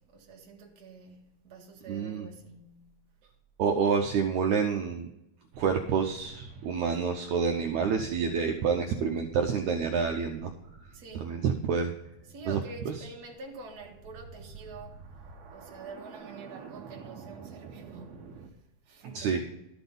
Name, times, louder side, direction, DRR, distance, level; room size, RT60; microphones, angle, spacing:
voice 1, 0.0-3.0 10.9-11.3 12.3-15.0 15.5-18.6 18.8-19.7, right 3 dB, 45° right, 1.3 m, -47 dB
voice 2, 1.9-2.3 3.6-5.1 5.6-10.5 11.1-11.9 12.5-12.6 12.9-13.0 19.1-19.5, right 6 dB, 85° right, 1.7 m, -28 dB
sound 1, 5.5-18.5, right 5 dB, 65° right, 1.7 m, -49 dB
12.5 x 6.1 x 5.4 m
omnidirectional pair, 4.2 m